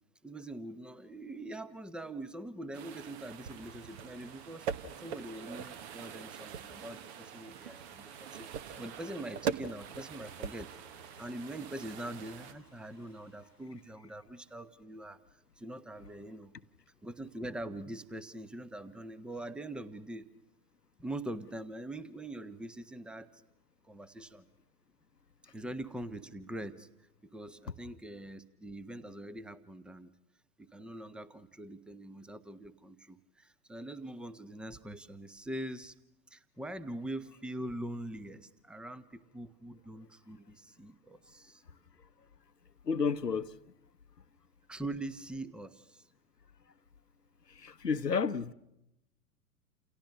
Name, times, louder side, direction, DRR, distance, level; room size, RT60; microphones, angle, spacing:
voice 1, 0.2-4.7 5.0-8.5 8.8-10.7 11.2-15.2 15.6-16.5 17.0-20.3 21.0-23.4 23.8-24.4 25.5-26.9 27.3-30.1 30.6-35.9 36.3-41.6 44.7-46.0, right 1 dB, ahead, 0.9 m, -43 dB
sound 1, 2.7-12.5, right 8 dB, 40° right, 1.4 m, -42 dB
sound 2, 3.4-14.0, equal, 85° right, 7.9 m, -63 dB
voice 2, 42.8-43.6 47.5-48.5, left 5 dB, 85° left, 1.0 m, -31 dB
29.5 x 28.0 x 6.5 m
figure-of-eight pair, 100°, 47 cm